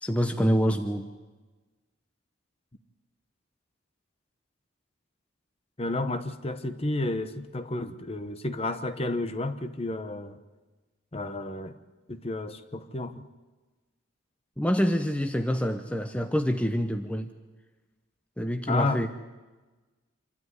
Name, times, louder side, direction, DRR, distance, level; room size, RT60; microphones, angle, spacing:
voice 1, 0.0-1.1 14.6-17.3 18.4-19.1, equal, 5° left, 6 dB, 0.8 m, -26 dB
voice 2, 5.8-10.4 11.1-11.8 12.1-13.3 18.7-19.0, left 2 dB, 30° left, 9 dB, 1.0 m, -31 dB
26.5 x 12.5 x 9.7 m, 1.3 s
head